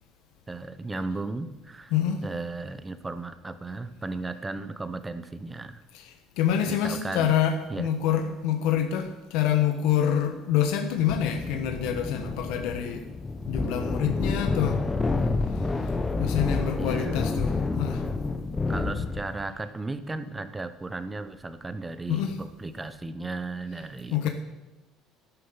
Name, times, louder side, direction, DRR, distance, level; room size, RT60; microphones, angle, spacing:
voice 1, 0.5-1.9 2.2-5.8 6.7-7.3 7.7-7.9 16.8-17.2 18.7-24.3, right 3 dB, 15° right, 11 dB, 0.9 m, -35 dB
voice 2, 1.9-2.2 5.9-13.0 13.5-14.8 16.2-17.5 17.8-18.0 22.1-22.3 24.1-24.3, left 9 dB, 80° left, 5 dB, 1.3 m, -26 dB
sound 1, 11.1-19.4, left 3 dB, 15° left, 0.8 m, -29 dB
12.0 x 11.0 x 5.7 m, 1.0 s
cardioid pair, 140°, 0 cm